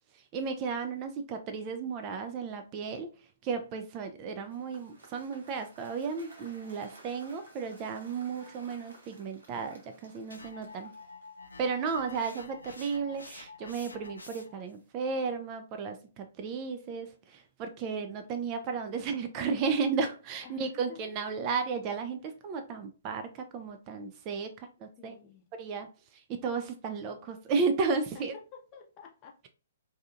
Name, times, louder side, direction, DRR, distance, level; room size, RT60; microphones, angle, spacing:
voice 1, 0.1-3.1 3.4-10.9 11.6-25.1 25.5-28.4, right 5 dB, 30° right, 0.3 m, -34 dB
Cheering / Applause / Crowd, 4.4-11.5, right 2 dB, 65° right, 0.9 m, -56 dB
sound 1, 10.3-14.7, left 3 dB, 75° left, 0.4 m, -48 dB
voice 2, 20.4-21.1 25.0-25.4 28.5-29.5, left 7 dB, 30° left, 0.6 m, -52 dB
2.7 x 2.3 x 2.5 m
figure-of-eight pair, 120°, 0 cm